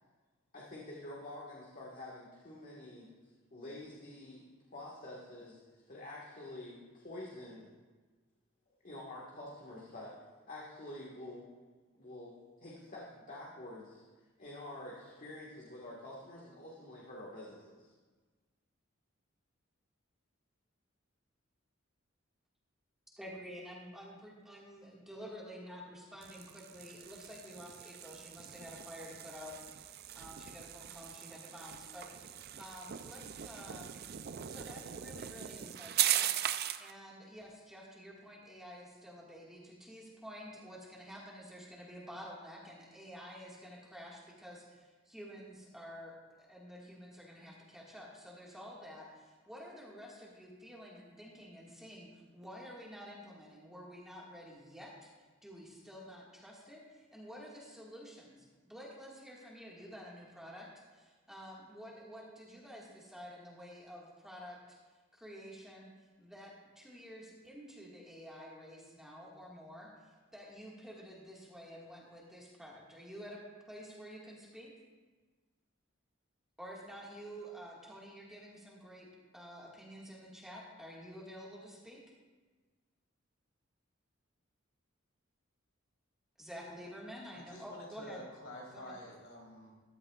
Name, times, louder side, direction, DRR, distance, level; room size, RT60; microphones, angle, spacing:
voice 1, 0.5-3.1 3.5-4.4 4.7-5.6 5.9-7.7 8.8-10.1 10.5-11.5 11.9-12.3 12.6-14.0 14.4-17.9, left 1 dB, 45° left, -5 dB, 1.7 m, -47 dB
voice 2, 23.1-33.9 34.5-36.3 36.8-55.1 55.4-64.8 65.1-65.9 66.2-73.4 73.7-74.7 76.6-79.1 79.3-82.0 86.4-88.2 88.7-88.9, equal, ahead, -4 dB, 1.9 m, -50 dB
sound 1, 26.2-36.9, right 11 dB, 50° right, 0.5 m, -39 dB
voice 3, 87.3-89.7, equal, 75° left, -2 dB, 3.3 m, -49 dB
14.0 x 12.5 x 2.4 m, 1.3 s
head